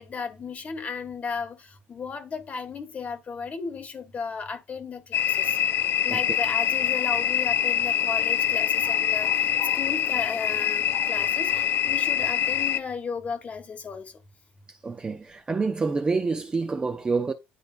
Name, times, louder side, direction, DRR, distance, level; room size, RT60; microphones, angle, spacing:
voice 1, 0.0-1.6 1.9-5.5 6.0-9.5 9.7-14.0, left 5 dB, 30° left, 1.4 m, -35 dB
sound 1, 5.1-12.8, left 9 dB, 50° left, 0.5 m, -24 dB
voice 2, 14.8-17.3, right 4 dB, 20° right, 0.6 m, -27 dB
11.0 x 4.0 x 2.6 m
cardioid pair, 135°, 5 cm